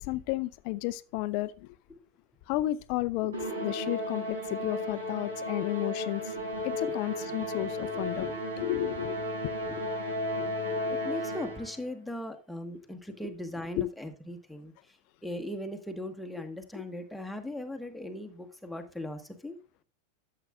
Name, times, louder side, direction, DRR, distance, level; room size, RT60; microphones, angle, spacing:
voice 1, 0.0-1.7 2.5-6.3 6.6-8.3 8.6-9.2 9.4-9.5 13.8-13.9, left 16 dB, 45° left, 0.4 m, -32 dB
Musical instrument, 3.3-11.8, left 1 dB, 75° right, 5.8 m, -34 dB
voice 2, 7.9-8.4 9.7-19.6, left 1 dB, ahead, 1.3 m, -39 dB
12.5 x 7.6 x 2.3 m
figure-of-eight pair, 90°, 0 cm